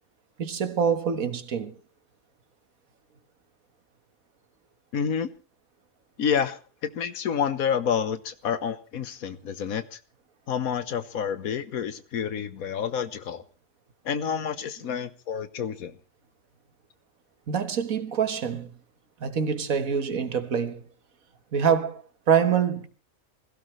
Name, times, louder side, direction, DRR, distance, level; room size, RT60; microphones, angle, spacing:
voice 1, 0.4-1.7 17.5-18.7 19.2-20.8 21.5-22.0 22.3-22.9, right 7 dB, 80° right, 1.8 m, -25 dB
voice 2, 4.9-5.3 6.2-10.0 10.5-13.4 14.0-15.9, left 7 dB, 90° left, 1.5 m, -29 dB
25.0 x 16.5 x 3.2 m
omnidirectional pair, 1.4 m